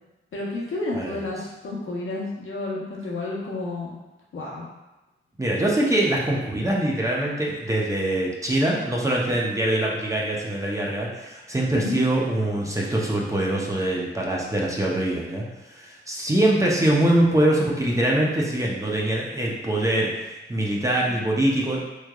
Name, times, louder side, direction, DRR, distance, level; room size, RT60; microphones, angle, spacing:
voice 1, 0.3-4.0 4.3-4.6 11.7-12.0, left 2 dB, 90° left, -4 dB, 0.8 m, -31 dB
voice 2, 5.4-15.4 15.7-20.1 20.5-21.8, right 1 dB, 15° right, -3 dB, 0.5 m, -23 dB
3.5 x 3.1 x 2.3 m, 1.0 s
wide cardioid pair, 125°, 20 cm